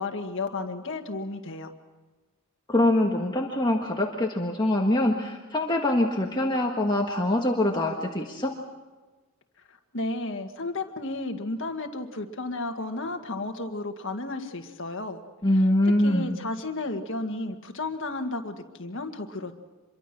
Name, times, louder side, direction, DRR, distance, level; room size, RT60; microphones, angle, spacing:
voice 1, 0.0-1.7 9.9-15.2 16.0-19.6, left 2 dB, 60° left, 5 dB, 1.9 m, -33 dB
voice 2, 2.7-8.5 15.4-16.4, left 1 dB, 20° left, 0 dB, 1.6 m, -24 dB
26.5 x 23.0 x 6.1 m, 1.2 s
head